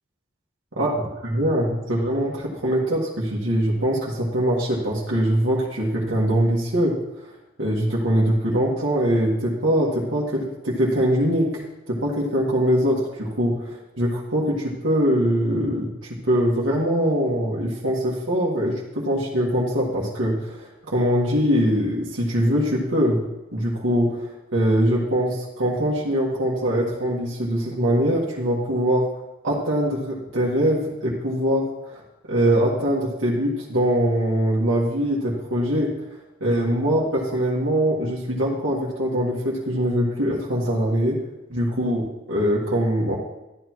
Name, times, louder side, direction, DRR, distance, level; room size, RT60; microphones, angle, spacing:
voice 1, 1.2-7.0 7.6-11.6 11.9-23.2 23.5-29.1 29.4-32.0 32.3-35.9 36.4-41.2 41.5-43.2, equal, 90° right, -6 dB, 1.8 m, -22 dB
13.0 x 9.5 x 3.1 m, 0.98 s
head